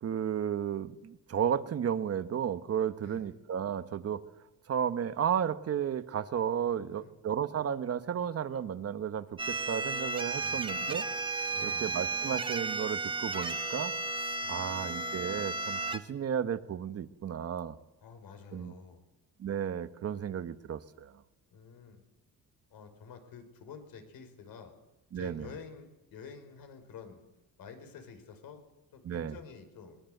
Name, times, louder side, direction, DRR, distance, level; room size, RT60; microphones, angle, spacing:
voice 1, 0.0-4.2 4.7-11.1 11.6-13.9 14.2-17.7 18.5-18.7 19.4-21.1 25.1-25.5 29.0-29.4, right 8 dB, 40° right, 11 dB, 1.3 m, -33 dB
voice 2, 6.6-7.1 10.3-10.7 11.5-11.9 14.4-15.0 18.0-19.0 21.5-22.0 22.7-24.7 25.1-27.2 27.6-28.6 28.9-30.0, left 6 dB, 70° left, 7 dB, 5.3 m, -49 dB
sound 1, 9.4-16.0, right 3 dB, 15° right, 1.5 m, -34 dB
23.0 x 21.5 x 8.0 m, 0.97 s
cardioid pair, 140°, 36 cm